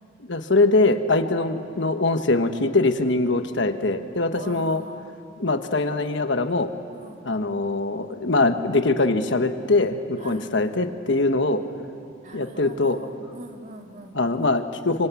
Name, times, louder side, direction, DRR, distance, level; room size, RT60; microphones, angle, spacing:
voice 1, 0.3-4.8 5.4-6.7 7.2-11.6 12.3-13.0 14.1-15.1, left 2 dB, 65° left, 8 dB, 1.3 m, -22 dB
voice 2, 4.3-5.1 6.9-7.3 10.2-10.7 12.2-14.2, right 2 dB, 40° right, 3 dB, 2.1 m, -43 dB
26.5 x 25.0 x 8.4 m, 2.5 s
head